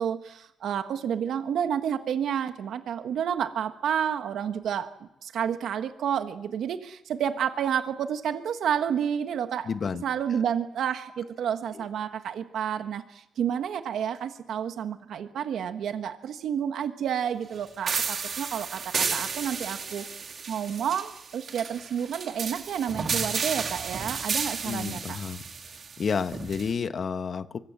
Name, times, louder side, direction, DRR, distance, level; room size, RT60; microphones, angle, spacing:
voice 1, 0.0-4.9 5.2-9.7 10.0-20.1 20.5-25.2, right 8 dB, 70° right, 8 dB, 1.5 m, -30 dB
voice 2, 9.6-10.0 11.7-11.9 24.6-27.6, left 6 dB, 45° left, 10 dB, 1.3 m, -31 dB
sound 1, 17.9-26.7, right 5 dB, 45° right, 2.4 m, -32 dB
24.5 x 22.5 x 7.4 m, 0.81 s
cardioid pair, 115°, 0 cm